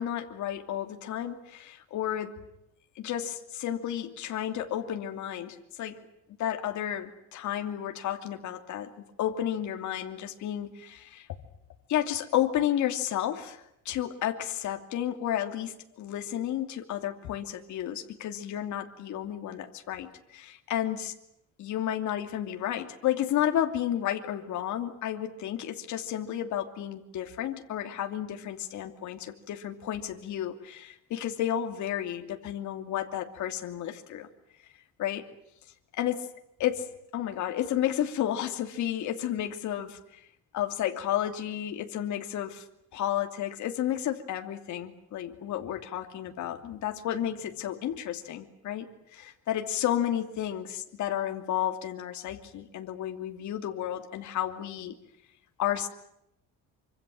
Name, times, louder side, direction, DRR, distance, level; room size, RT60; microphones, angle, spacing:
voice 1, 0.0-2.5 3.0-6.1 6.4-11.3 11.9-21.1 21.6-34.3 35.0-35.3 35.9-36.3 36.6-40.0 40.5-42.6 42.9-55.0 55.6-55.9, left 11 dB, 60° left, 4 dB, 2.9 m, -32 dB
26.0 x 25.5 x 7.8 m, 0.80 s
cardioid pair, 155°, 33 cm